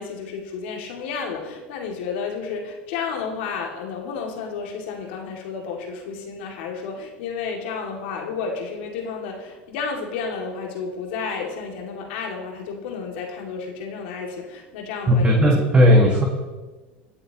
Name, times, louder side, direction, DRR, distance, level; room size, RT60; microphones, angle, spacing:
voice 1, 0.0-15.5, left 5 dB, 70° left, 1 dB, 2.3 m, -31 dB
voice 2, 15.1-16.2, equal, 20° right, 0 dB, 1.7 m, -15 dB
20.5 x 7.9 x 2.9 m, 1.2 s
hypercardioid pair, 90°, 6 cm